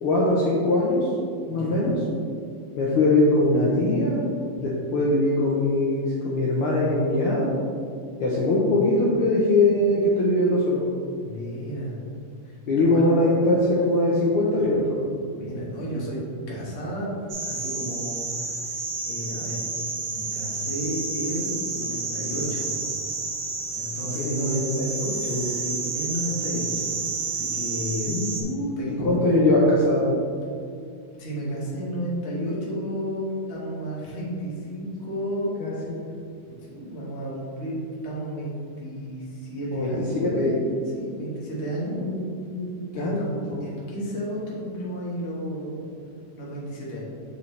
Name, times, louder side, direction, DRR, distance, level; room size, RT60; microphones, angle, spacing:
voice 1, 0.0-1.1 1.5-1.9 2.8-4.2 4.6-7.5 8.2-10.8 12.7-15.0 24.1-25.5 28.1-28.4 28.9-30.1 35.6-36.0 39.7-39.9 40.2-40.5 42.0-42.7 43.0-43.2 43.5-43.6, left 2 dB, 90° left, -5 dB, 1.2 m, -22 dB
voice 2, 1.5-2.0 11.2-12.0 12.4-13.0 15.3-16.2 16.5-17.1 17.4-18.6 19.0-19.6 20.1-22.7 23.7-24.6 25.1-26.9 27.3-29.2 31.2-35.5 36.4-40.6 40.9-42.0 42.9-43.3 43.6-45.9 46.4-47.0, equal, 40° left, -6 dB, 0.9 m, -32 dB
sound 1, 17.3-28.4, right 4 dB, 80° right, 1.2 m, -30 dB
6.9 x 5.5 x 3.2 m, 2.4 s
omnidirectional pair, 3.5 m